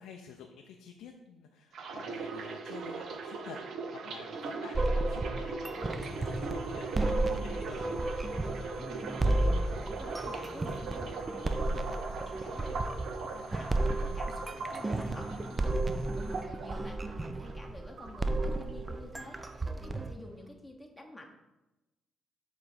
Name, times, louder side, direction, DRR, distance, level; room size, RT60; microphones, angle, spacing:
voice 1, 0.0-3.6 4.0-7.8, left 7 dB, 90° left, 3 dB, 0.5 m, -50 dB
sound 1, 1.7-17.7 18.0-18.9 19.2-19.5, right 4 dB, 65° right, 0.7 m, -40 dB
sound 2, 4.7-20.1, right 2 dB, 25° right, 0.5 m, -33 dB
sound 3, 6.0-16.4, left 3 dB, 65° left, 0.8 m, -55 dB
voice 2, 8.8-21.3, left 1 dB, 5° left, 0 dB, 0.9 m, -50 dB
7.0 x 3.2 x 5.0 m, 1.0 s
cardioid pair, 90°, 0 cm